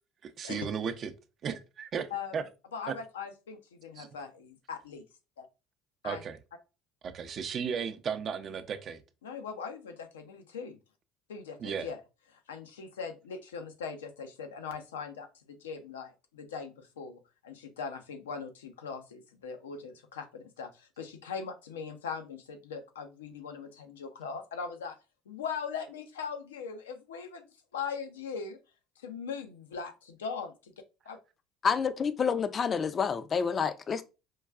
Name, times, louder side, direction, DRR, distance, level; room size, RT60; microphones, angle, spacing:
voice 1, 0.2-1.1 1.4-2.4 2.9-3.0 4.0-4.1 6.0-6.4 7.0-9.0 11.6-11.9, right 7 dB, 50° right, 0.5 m, -35 dB
voice 2, 2.7-5.0 5.4-5.5 6.0-6.2 9.2-10.8 11.3-12.0 12.3-25.0 25.3-28.6 29.0-30.7 31.0-31.2, left 6 dB, 90° left, 0.5 m, -40 dB
voice 3, 31.6-34.0, left 6 dB, 40° left, 0.4 m, -28 dB
4.6 x 2.3 x 2.3 m
hypercardioid pair, 70°, 0 cm